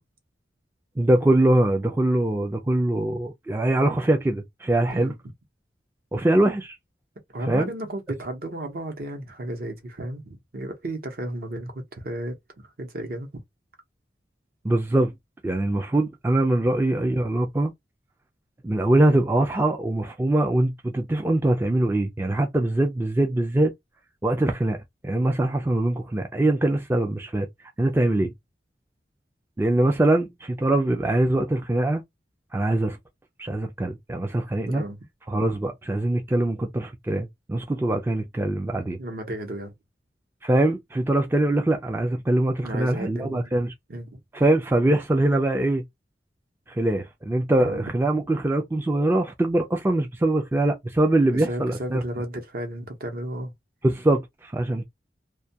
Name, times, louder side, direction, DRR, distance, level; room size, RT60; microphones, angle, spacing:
voice 1, 1.0-5.1 6.1-6.7 7.5-7.7 14.6-15.1 15.4-17.7 18.6-23.7 24.2-24.8 25.0-27.5 27.8-28.3 29.6-32.0 32.5-33.0 33.4-34.8 35.3-39.0 40.4-43.7 44.3-45.8 46.7-52.0 53.8-54.8, right 1 dB, 15° right, 0.3 m, -23 dB
voice 2, 7.3-13.4 34.5-35.0 39.0-39.7 42.6-43.5 43.9-44.2 47.6-47.8 51.2-53.5, right 1 dB, 55° right, 0.8 m, -34 dB
2.3 x 2.2 x 2.6 m
head